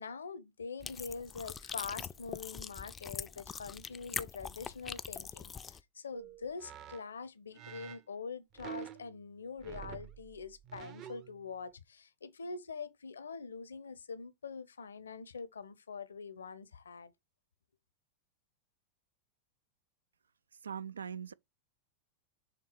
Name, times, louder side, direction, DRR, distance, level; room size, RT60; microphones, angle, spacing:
voice 1, 0.0-17.1, left 5 dB, 70° left, 0.7 m, -44 dB
sound 1, 0.8-5.8, left 6 dB, 20° left, 0.4 m, -43 dB
sound 2, 6.1-7.0 7.5-8.0 8.5-9.3 9.6-11.4, right 10 dB, 35° right, 0.7 m, -48 dB
voice 2, 20.6-21.3, right 7 dB, 70° right, 0.4 m, -41 dB
6.8 x 3.5 x 4.3 m
figure-of-eight pair, 90°, 0 cm